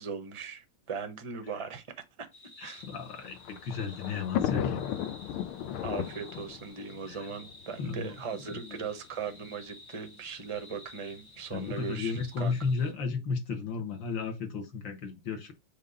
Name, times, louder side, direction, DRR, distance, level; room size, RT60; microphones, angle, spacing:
voice 1, 0.0-1.9 2.2-2.3 2.6-2.8 5.8-12.6, right 6 dB, 35° right, 0.4 m, -39 dB
sound 1, 2.3-12.9, left 2 dB, 45° left, 1.3 m, -53 dB
voice 2, 2.6-4.8 7.8-8.1 11.5-15.5, left 5 dB, 65° left, 1.9 m, -33 dB
Thunder, 2.9-8.2 9.0-9.1 9.4-9.5 10.5-10.8, left 10 dB, 85° left, 1.6 m, -35 dB
5.2 x 3.8 x 5.4 m
omnidirectional pair, 2.3 m